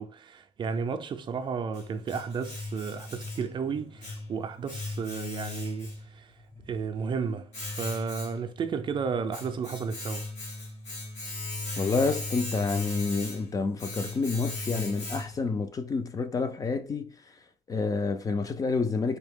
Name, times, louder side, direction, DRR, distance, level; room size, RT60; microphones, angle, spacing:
voice 1, 0.0-6.3 6.7-7.5 7.8-10.3, right 6 dB, 45° right, 0.4 m, -33 dB
Domestic sounds home sounds, 1.2-15.6, left 2 dB, 85° left, 1.9 m, -39 dB
voice 2, 11.8-17.1 17.7-19.2, left 4 dB, 30° left, 0.4 m, -28 dB
4.0 x 2.7 x 3.5 m
wide cardioid pair, 160°, 12 cm